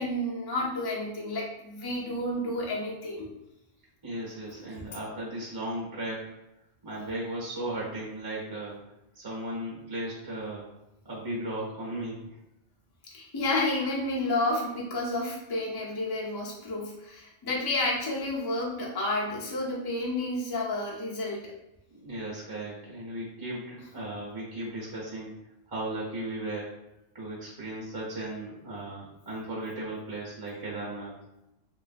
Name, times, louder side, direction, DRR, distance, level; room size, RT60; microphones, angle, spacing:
voice 1, 0.0-3.3 13.1-21.5, left 2 dB, 25° left, -5 dB, 0.5 m, -30 dB
voice 2, 4.0-6.3 6.8-8.8 9.1-10.7 11.0-12.4 21.9-25.3 25.7-26.8 27.1-31.1, right 1 dB, 20° right, -5 dB, 0.9 m, -36 dB
3.2 x 2.4 x 2.5 m, 0.88 s
omnidirectional pair, 1.3 m